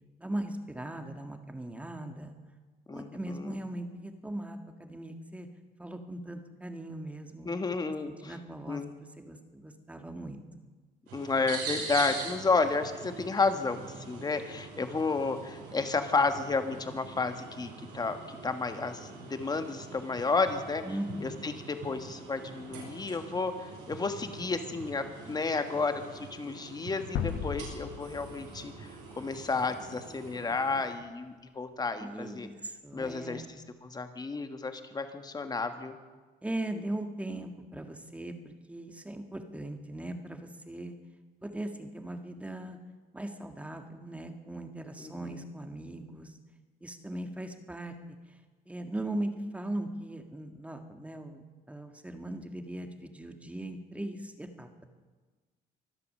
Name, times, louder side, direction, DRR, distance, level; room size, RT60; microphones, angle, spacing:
voice 1, 0.2-2.3 2.9-5.5 5.8-7.5 8.0-10.4 20.8-21.5 32.0-33.6 36.4-40.9 41.4-42.8 43.1-46.4 46.8-47.9 48.7-54.9, right 1 dB, 10° right, 6 dB, 1.5 m, -39 dB
voice 2, 2.9-3.6 7.4-8.3 8.7-9.0 11.1-20.8 21.2-28.9 29.2-32.5 32.9-33.4 33.8-36.0 45.0-45.4, left 4 dB, 25° left, 8 dB, 1.5 m, -32 dB
sound 1, 11.1-30.8, right 4 dB, 85° right, 5.7 m, -44 dB
sound 2, 27.1-30.1, left 8 dB, 85° left, 1.3 m, -37 dB
24.5 x 8.3 x 6.6 m, 1.3 s
cardioid pair, 110°, 17 cm